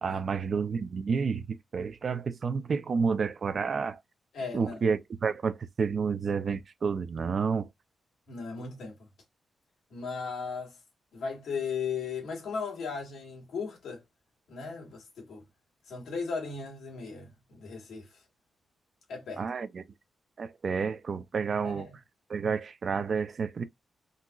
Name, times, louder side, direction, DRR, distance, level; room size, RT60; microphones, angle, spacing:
voice 1, 0.0-4.0 4.5-7.7 19.4-19.8 20.4-21.9 22.3-23.6, right 5 dB, 40° right, 0.4 m, -30 dB
voice 2, 4.3-4.8 8.3-9.1 9.9-10.8 11.1-14.0 14.5-15.4 15.9-18.2 19.1-19.5 21.6-22.0, left 5 dB, 85° left, 1.8 m, -37 dB
3.8 x 2.9 x 2.2 m
wide cardioid pair, 165°, 0 cm